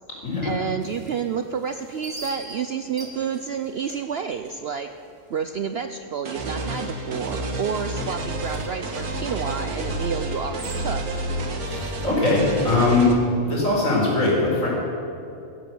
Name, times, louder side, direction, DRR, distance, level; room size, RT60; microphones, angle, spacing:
voice 1, 0.4-4.9 5.3-11.0, right 7 dB, 60° right, 8 dB, 0.7 m, -29 dB
sound 1, 0.8-5.7 6.0-6.1 6.5-6.9 7.2-11.3, right 2 dB, 20° right, 1.6 m, -44 dB
sound 2, 6.2-13.1, right 1 dB, 80° right, 2.0 m, -30 dB
voice 2, 11.6-13.1 13.4-14.7, left 2 dB, 60° left, -4 dB, 5.0 m, -21 dB
15.5 x 11.0 x 7.9 m, 2.7 s
omnidirectional pair, 1.5 m